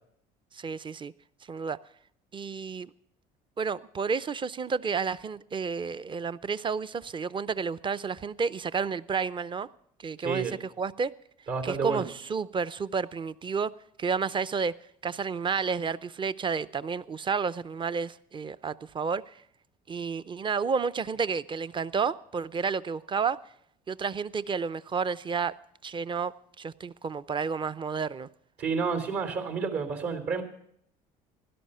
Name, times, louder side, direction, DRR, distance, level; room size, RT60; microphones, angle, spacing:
voice 1, 0.5-1.1 1.5-1.8 2.3-2.9 3.6-9.7 10.0-11.1 11.6-13.7 14.0-14.7 15.0-19.4 19.9-23.4 23.9-25.5 25.8-28.3, right 5 dB, 25° right, 0.6 m, -31 dB
voice 2, 10.2-10.5 11.5-12.0 28.6-30.4, right 5 dB, 65° right, 3.5 m, -30 dB
16.5 x 12.0 x 5.6 m
supercardioid pair, 75°, 19 cm